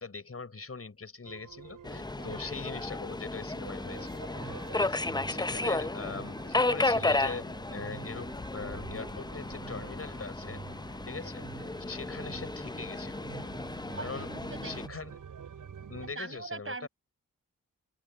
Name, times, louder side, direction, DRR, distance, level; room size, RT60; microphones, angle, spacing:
voice 1, 0.0-10.6 11.1-13.2 14.0-14.3 14.6-15.2 15.6-16.9, left 4 dB, 45° left, 5.6 m, -42 dB
sound 1, 1.3-16.1, right 7 dB, 70° right, 5.7 m, -48 dB
Subway metro underground, 1.8-14.9, left 2 dB, 10° left, 0.7 m, -33 dB
voice 2, 13.9-14.7 15.0-15.2 16.1-16.9, right 3 dB, 40° right, 5.8 m, -41 dB
open air
supercardioid pair, 40°, 33 cm